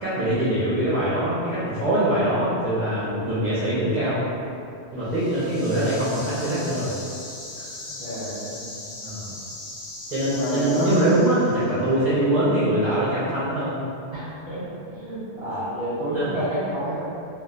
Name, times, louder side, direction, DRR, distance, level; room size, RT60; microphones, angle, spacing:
voice 1, 0.0-4.2 4.9-6.9 7.6-7.7 9.0-9.3 10.1-13.8 16.1-16.3, right 1 dB, 45° right, -12 dB, 0.6 m, -23 dB
sound 1, 5.0-11.8, left 2 dB, 60° left, 0.7 m, -39 dB
voice 2, 8.0-8.6 10.3-11.0 14.1-17.0, right 1 dB, 25° right, -13 dB, 1.0 m, -29 dB
2.4 x 2.1 x 3.6 m, 2.6 s
omnidirectional pair, 1.2 m